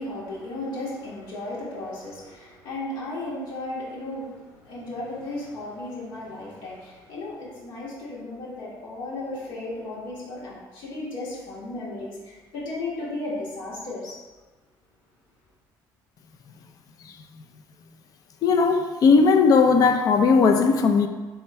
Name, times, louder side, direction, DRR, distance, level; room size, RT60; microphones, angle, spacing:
voice 1, 0.0-14.2, left 2 dB, 70° left, 1.5 m, -35 dB
voice 2, 18.4-21.1, left 5 dB, 45° left, 0.4 m, -18 dB
3.5 x 3.4 x 4.2 m
cardioid pair, 140°, 8 cm